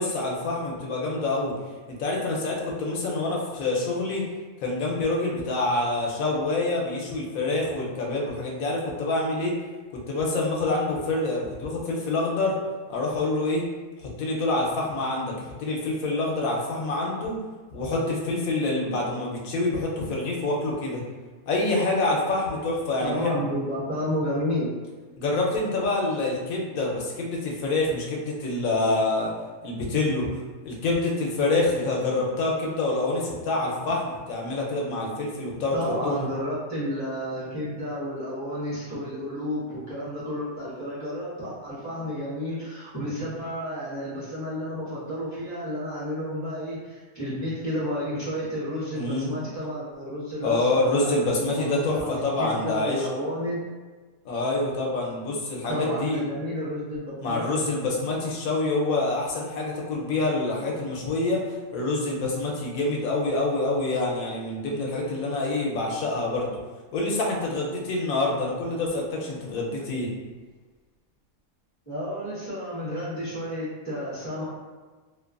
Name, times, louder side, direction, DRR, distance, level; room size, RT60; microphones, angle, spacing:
voice 1, 0.0-1.5 2.0-4.2 4.6-9.5 10.1-12.6 12.9-13.6 14.0-17.4 17.7-21.0 21.5-23.3 25.2-29.3 29.6-30.3 30.6-35.7 36.0-36.3 48.9-49.4 50.4-53.1 54.2-56.3 57.2-61.4 61.7-66.6 66.9-70.1, left 2 dB, 80° left, -2 dB, 1.0 m, -26 dB
voice 2, 23.0-24.6 35.7-51.1 51.5-53.6 55.7-57.4 71.9-74.4, equal, 15° left, -11 dB, 0.7 m, -31 dB
2.8 x 2.2 x 2.3 m, 1.3 s
omnidirectional pair, 1.5 m